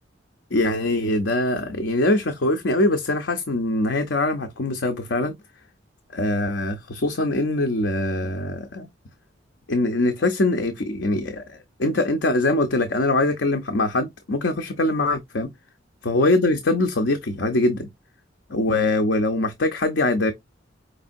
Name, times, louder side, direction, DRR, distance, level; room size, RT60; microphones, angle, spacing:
voice 1, 0.5-5.4 6.1-8.9 9.7-15.5 16.0-17.9 18.5-20.3, left 2 dB, 70° left, 0.7 m, -23 dB
5.3 x 3.3 x 2.6 m
head